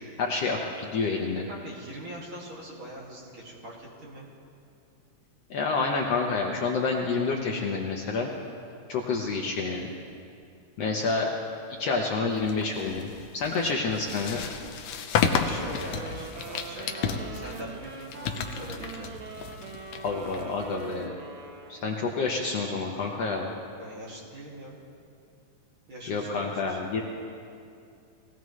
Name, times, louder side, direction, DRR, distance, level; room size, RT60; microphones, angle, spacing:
voice 1, 0.2-1.4 5.5-8.3 8.9-9.9 10.8-11.3 11.8-13.1 13.3-14.4 20.0-21.1 21.7-23.5 26.1-27.0, left 4 dB, 65° left, 0 dB, 1.7 m, -28 dB
voice 2, 1.3-4.3 15.4-19.2 23.8-24.8 25.9-26.8, equal, 45° right, -5 dB, 2.9 m, -42 dB
sound 1, 12.4-21.0, left 6 dB, 85° left, 1.2 m, -32 dB
sound 2, 15.3-22.2, right 4 dB, 65° right, 2.2 m, -43 dB
20.5 x 16.5 x 3.2 m, 2.5 s
omnidirectional pair, 3.6 m